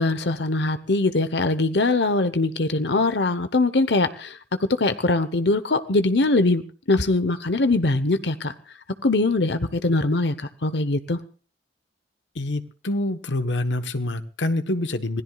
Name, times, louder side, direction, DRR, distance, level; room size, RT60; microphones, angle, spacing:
voice 1, 0.0-6.6 6.9-8.5 9.0-11.2, left 2 dB, 70° left, 11 dB, 1.0 m, -22 dB
voice 2, 12.3-15.2, left 1 dB, 85° left, 9 dB, 1.2 m, -26 dB
26.5 x 17.0 x 2.4 m, 0.39 s
head